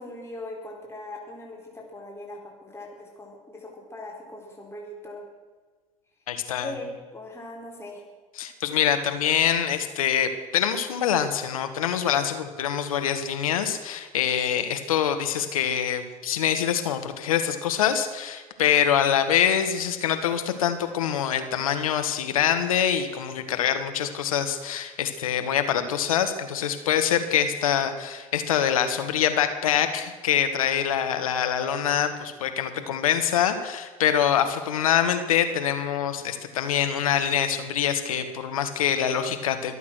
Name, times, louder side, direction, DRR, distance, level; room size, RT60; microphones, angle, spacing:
voice 1, 0.0-5.2 6.6-8.0, left 1 dB, 15° left, -1 dB, 4.4 m, -40 dB
voice 2, 6.3-6.7 8.4-39.7, left 9 dB, 85° left, 8 dB, 1.6 m, -25 dB
23.0 x 8.6 x 6.2 m, 1.4 s
hypercardioid pair, 75°, 18 cm